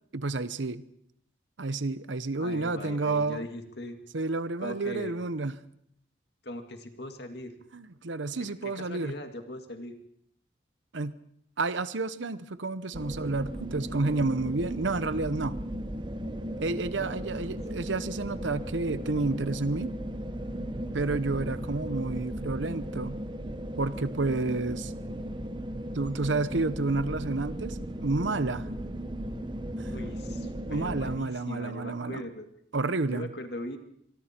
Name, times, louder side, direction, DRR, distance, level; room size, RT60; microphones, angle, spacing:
voice 1, 0.1-0.8 1.6-3.4 4.1-5.5 7.7-9.1 10.9-11.1 11.6-15.6 16.6-19.9 20.9-23.2 23.8-24.9 25.9-28.7 29.8-29.9 30.4-32.2 32.7-33.3, right 3 dB, 85° right, 0.9 m, -30 dB
voice 2, 2.4-4.0 4.6-5.1 6.4-7.5 8.6-9.9 16.9-17.2 29.9-32.5 33.1-33.8, left 1 dB, 65° left, 2.1 m, -40 dB
sound 1, 12.9-31.2, right 1 dB, 25° right, 1.0 m, -36 dB
24.5 x 24.0 x 4.5 m
head